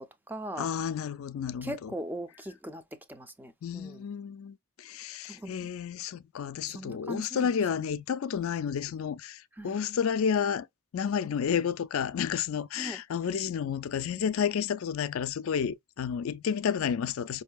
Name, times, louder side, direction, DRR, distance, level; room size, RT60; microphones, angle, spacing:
voice 1, 0.0-0.7 1.6-2.8 3.1-4.0 5.3-5.5 6.7-7.5 9.6-9.8 12.8-13.0, right 1 dB, 10° right, 0.5 m, -39 dB
voice 2, 0.6-1.9 3.6-10.7 10.9-17.4, left 7 dB, 70° left, 0.4 m, -31 dB
5.3 x 2.6 x 2.2 m
head